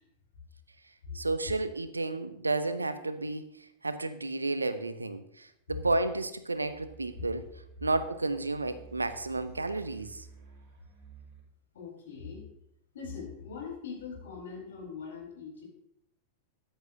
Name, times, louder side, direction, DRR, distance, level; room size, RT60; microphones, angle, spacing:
voice 1, 1.1-3.5 3.8-7.4 7.8-10.3, right 2 dB, 80° right, 12 dB, 0.7 m, -31 dB
sound 1, 6.4-11.4, right 5 dB, 45° right, 4.8 m, -53 dB
voice 2, 11.7-12.4 12.9-15.6, left 5 dB, 60° left, -1 dB, 4.3 m, -42 dB
14.0 x 10.0 x 2.7 m, 0.77 s
figure-of-eight pair, 90°, 0 cm